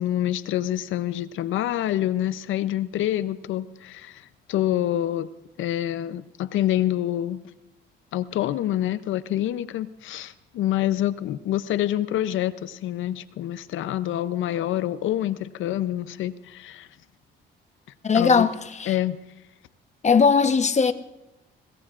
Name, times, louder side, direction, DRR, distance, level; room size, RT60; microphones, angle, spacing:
voice 1, 0.0-5.3 5.6-7.4 8.1-16.9 18.1-18.5 18.9-19.2, left 12 dB, 80° left, 0.6 m, -26 dB
voice 2, 18.0-18.5 18.8-18.9 20.0-20.9, left 5 dB, 35° left, 1.0 m, -18 dB
21.5 x 18.0 x 2.5 m
cardioid pair, 90°, 20 cm